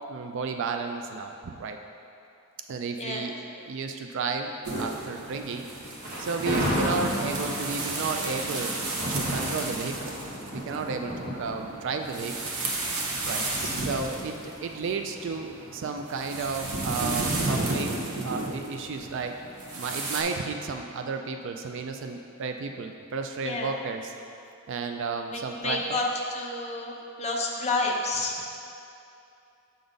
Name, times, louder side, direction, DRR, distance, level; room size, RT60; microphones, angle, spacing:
voice 1, 0.1-1.8 2.7-5.7 6.2-8.8 9.1-10.2 10.5-12.5 13.2-13.4 13.8-17.9 18.2-19.3 19.7-24.1 24.7-26.0, right 4 dB, 55° right, 5 dB, 0.3 m, -33 dB
sound 1, 4.6-20.2, right 2 dB, 75° right, 0.9 m, -33 dB
Thunder, 6.0-13.2, equal, 40° right, 1.3 m, -33 dB
voice 2, 13.3-13.7 23.4-23.8 25.3-26.0 26.3-26.9 27.2-28.4, left 2 dB, 30° left, -1 dB, 0.7 m, -30 dB
6.9 x 3.9 x 5.1 m, 2.7 s
head